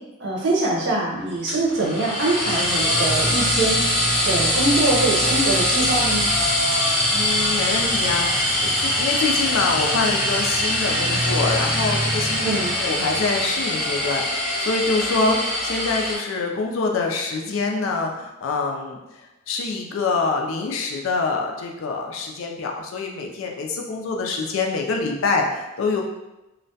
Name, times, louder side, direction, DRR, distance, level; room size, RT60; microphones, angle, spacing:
voice 1, 0.2-3.9 4.2-6.3 6.5-6.7 12.4-12.8, right 2 dB, 60° right, -3 dB, 0.6 m, -23 dB
sound 1, 1.5-16.2, left 1 dB, 5° left, 0.7 m, -22 dB
voice 2, 7.1-19.2 19.5-26.0, left 3 dB, 70° left, 1 dB, 0.4 m, -25 dB
2.2 x 2.1 x 2.6 m, 0.99 s
head